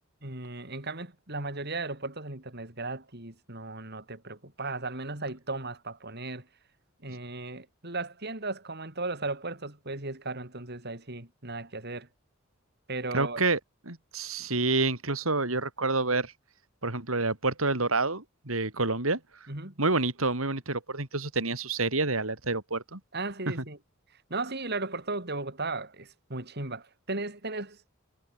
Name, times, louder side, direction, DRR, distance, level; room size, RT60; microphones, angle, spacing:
voice 1, 0.2-6.5 7.0-12.1 12.9-13.4 14.4-14.5 19.5-19.8 23.1-23.8 24.3-28.0, right 3 dB, 50° right, 5.0 m, -36 dB
voice 2, 13.1-13.6 13.9-16.3 16.8-19.2 19.8-23.0, right 3 dB, 85° right, 4.0 m, -28 dB
head